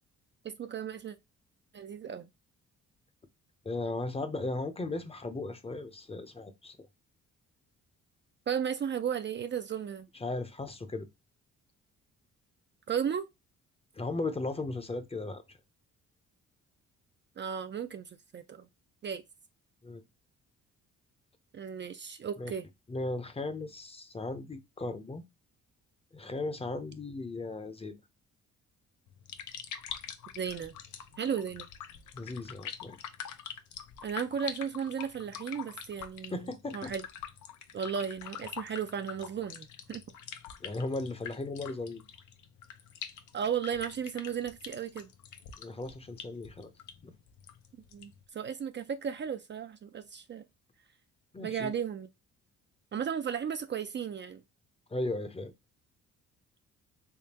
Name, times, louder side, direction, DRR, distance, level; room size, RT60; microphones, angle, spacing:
voice 1, 0.4-1.2 1.7-2.3 8.5-10.1 12.9-13.3 17.4-18.7 19.0-19.2 21.5-22.7 30.4-30.7 31.2-31.7 34.0-36.5 36.7-37.0 37.7-40.0 43.3-45.1 47.9-50.4 51.4-52.1 52.9-54.4, right 7 dB, 40° right, 0.4 m, -35 dB
voice 2, 3.6-6.8 10.1-11.1 13.9-15.6 19.8-20.0 22.4-22.5 22.9-25.2 26.1-28.0 32.1-33.0 36.3-36.9 40.6-42.0 45.6-46.7 47.0-47.1 51.3-51.7 54.9-55.5, left 2 dB, 20° left, 0.7 m, -36 dB
sound 1, 29.1-48.2, left 8 dB, 75° left, 0.7 m, -45 dB
3.6 x 3.2 x 2.8 m
cardioid pair, 90°, 30 cm